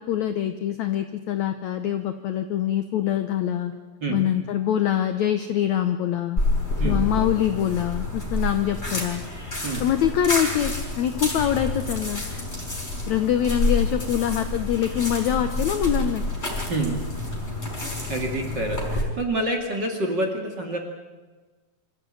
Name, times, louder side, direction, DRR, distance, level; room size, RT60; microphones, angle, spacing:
voice 1, 0.1-3.7 4.1-6.4 6.8-9.2 9.8-12.2 13.1-16.2, left 10 dB, 75° left, 8 dB, 1.7 m, -24 dB
sound 1, 6.4-19.0, left 2 dB, 15° left, 5.3 m, -28 dB
voice 2, 18.1-20.8, right 2 dB, 35° right, 2 dB, 2.3 m, -27 dB
26.0 x 14.5 x 8.7 m, 1.3 s
omnidirectional pair, 4.4 m